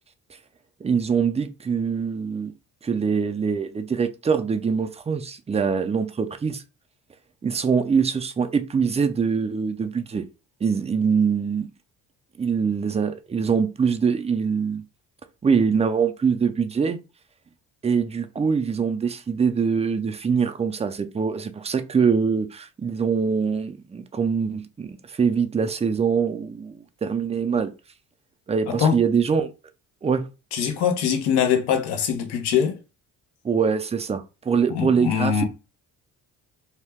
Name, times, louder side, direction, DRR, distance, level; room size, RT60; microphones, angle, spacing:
voice 1, 0.8-2.5 2.8-6.6 7.4-10.3 10.6-11.7 12.4-14.8 15.4-17.0 17.8-27.7 28.5-29.5 30.0-30.3 33.4-35.4, right 6 dB, 15° right, 0.4 m, -23 dB
voice 2, 28.7-29.0 30.5-32.8 34.7-35.4, left 8 dB, 80° left, 0.9 m, -22 dB
2.8 x 2.2 x 3.4 m
supercardioid pair, 70°, 38 cm